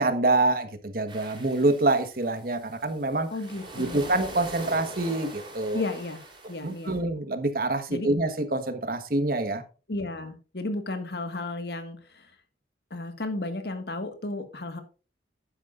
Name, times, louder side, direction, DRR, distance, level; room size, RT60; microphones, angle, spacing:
voice 1, 0.0-3.3 3.7-5.8 6.6-9.6, right 2 dB, 55° right, 1.3 m, -26 dB
sound 1, 1.1-7.0, right 1 dB, 25° right, 3.7 m, -43 dB
voice 2, 3.3-4.1 5.7-6.2 6.5-6.9 7.9-8.1 9.9-12.3 12.9-14.8, left 2 dB, 65° left, 1.7 m, -33 dB
11.5 x 9.8 x 2.5 m
head